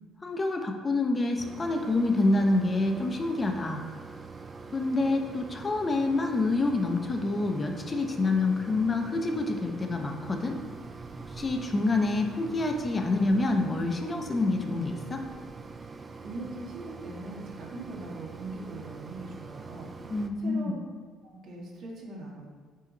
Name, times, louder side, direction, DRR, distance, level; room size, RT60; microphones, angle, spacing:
voice 1, 0.2-3.8 4.7-10.6 11.3-15.2 20.1-20.8, left 2 dB, 25° left, 3 dB, 1.0 m, -27 dB
Mechanisms, 1.4-20.3, right 4 dB, 30° right, 0.5 m, -44 dB
voice 2, 15.9-20.1 20.4-20.8 21.3-22.5, right 2 dB, 60° right, -2 dB, 1.8 m, -41 dB
8.9 x 4.3 x 4.1 m, 1.5 s
cardioid pair, 105°, 0 cm